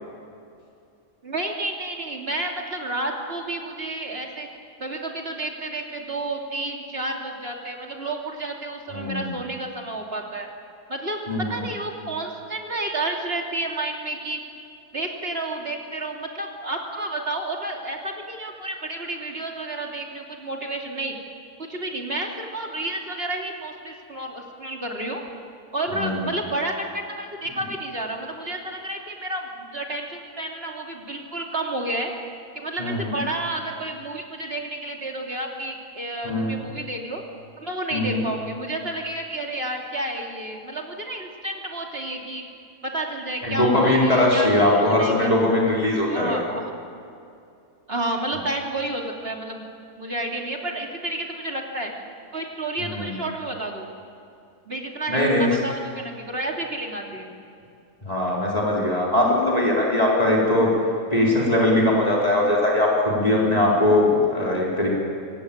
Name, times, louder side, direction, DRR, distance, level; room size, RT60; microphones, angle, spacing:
voice 1, 1.2-4.5 4.8-10.5 10.9-14.4 14.9-21.2 21.6-25.2 25.7-32.1 32.5-37.2 37.6-42.4 42.8-45.3 46.1-46.7 47.9-49.7 50.0-51.9 52.3-53.9 54.6-57.3, right 2 dB, 40° right, 1 dB, 3.1 m, -30 dB
voice 2, 11.3-11.6 25.9-26.1 32.8-33.2 36.2-36.5 37.9-38.2 43.4-46.4 52.9-53.1 55.1-55.5 58.0-60.7 61.1-64.9, left 1 dB, 25° left, -4 dB, 4.3 m, -20 dB
26.5 x 18.0 x 8.6 m, 2.5 s
omnidirectional pair, 1.5 m